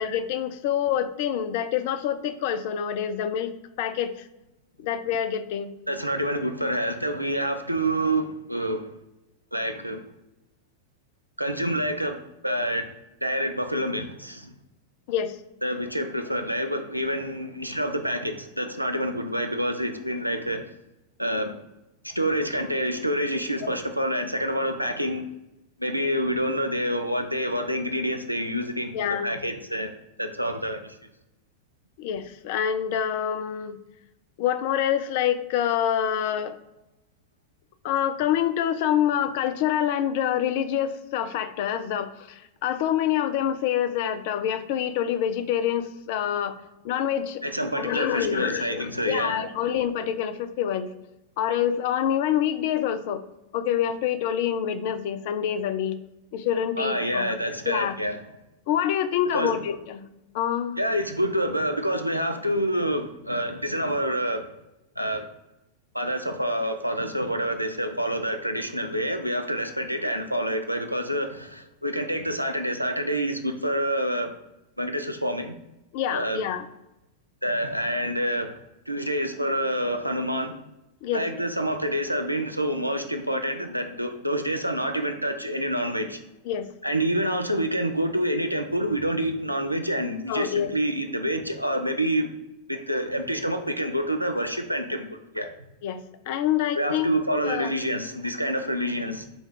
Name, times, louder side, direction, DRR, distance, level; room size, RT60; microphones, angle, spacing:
voice 1, 0.0-4.3 4.8-5.7 15.1-15.4 23.6-23.7 28.9-29.4 32.0-33.8 34.4-36.6 37.8-46.6 46.8-47.4 47.8-50.9 51.4-53.2 53.5-56.0 56.3-57.4 57.7-58.0 58.7-60.1 60.3-60.7 75.9-76.7 81.0-81.4 86.5-86.7 90.3-90.7 95.8-97.1 97.5-97.7, left 9 dB, 50° left, 12 dB, 0.4 m, -26 dB
voice 2, 5.9-8.9 9.5-10.0 11.4-12.2 12.4-12.9 13.2-14.5 15.6-20.6 21.2-21.6 22.0-25.3 25.8-29.9 30.2-31.0 47.4-49.4 56.8-58.2 59.3-59.5 60.8-64.5 65.0-65.3 65.9-74.3 74.8-75.5 76.1-76.4 77.4-78.5 78.9-80.6 81.1-86.2 86.8-92.3 92.7-95.1 95.3-95.5 96.8-99.2, equal, 90° right, 6 dB, 0.4 m, -27 dB
5.1 x 2.3 x 3.7 m, 0.95 s
figure-of-eight pair, 90°, 0 cm